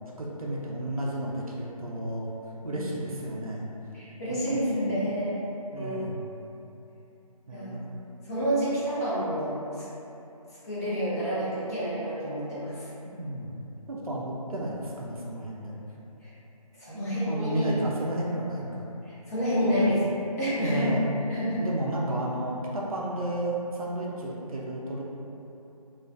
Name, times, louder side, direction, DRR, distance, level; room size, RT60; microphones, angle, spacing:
voice 1, 0.2-2.3 2.6-3.7 4.3-4.6 5.7-6.2 7.5-7.9 13.0-13.5 13.9-15.8 16.9-18.9 19.6-19.9 20.6-21.1 21.6-25.0, right 1 dB, 65° right, -3 dB, 0.5 m, -32 dB
voice 2, 3.9-5.4 5.7-6.0 7.5-7.7 8.2-9.8 10.6-12.9 16.2-16.3 16.8-17.7 19.0-20.0 20.4-20.8 21.2-21.6, equal, 25° left, -13 dB, 0.7 m, -29 dB
2.4 x 2.3 x 2.3 m, 2.9 s
figure-of-eight pair, 160°, 20 cm